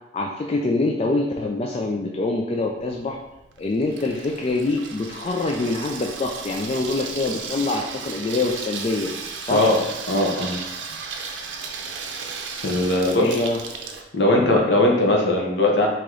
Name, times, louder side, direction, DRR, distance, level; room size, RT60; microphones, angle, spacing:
voice 1, 0.1-3.2 3.6-9.1 9.4-9.7 13.1-13.6, left 2 dB, 35° left, 1 dB, 0.3 m, -25 dB
Water tap faucet / Sink (filling or washing), 2.8-14.0, right 5 dB, 90° right, 0.6 m, -35 dB
voice 2, 10.1-10.6 12.6-13.4 14.1-15.9, left 1 dB, 70° left, 0 dB, 1.0 m, -19 dB
4.8 x 2.9 x 3.8 m, 0.93 s
head